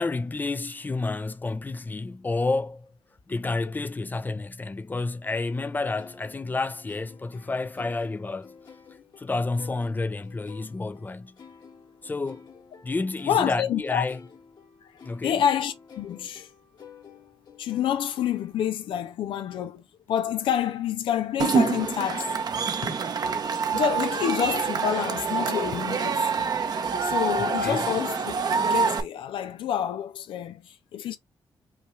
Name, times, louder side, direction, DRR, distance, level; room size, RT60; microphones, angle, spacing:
voice 1, 0.0-2.9 3.3-8.5 9.2-11.3 12.0-12.5 12.8-14.2 15.0-15.4 27.4-27.8, left 3 dB, 20° left, 0.5 m, -30 dB
sound 1, 5.2-18.8, left 6 dB, 55° left, 1.5 m, -50 dB
voice 2, 13.3-14.0 15.2-16.5 17.6-19.8 20.1-22.4 22.8-23.0 23.7-26.2 27.0-31.2, left 9 dB, 85° left, 0.4 m, -28 dB
Cheering / Crowd, 21.4-29.0, right 5 dB, 50° right, 0.8 m, -26 dB
5.6 x 2.4 x 3.1 m
cardioid pair, 90°, 9 cm